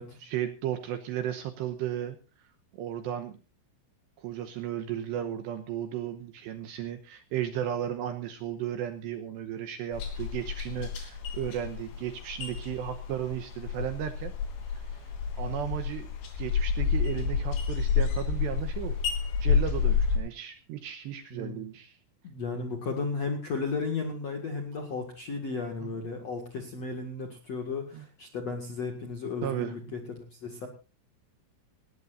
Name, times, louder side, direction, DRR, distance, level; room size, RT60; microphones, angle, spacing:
voice 1, 0.2-2.2 2.8-3.4 4.2-14.3 14.7-14.8 15.4-16.1 16.4-19.0 19.4-22.0 25.8-25.9 27.9-28.0 29.4-29.8, right 10 dB, 75° right, 8 dB, 2.7 m, -34 dB
sound 1, 9.9-20.2, left 6 dB, 85° left, 5.9 m, -29 dB
voice 2, 22.2-30.7, left 4 dB, 55° left, 3 dB, 2.0 m, -34 dB
19.0 x 18.0 x 2.6 m, 0.34 s
omnidirectional pair, 6.0 m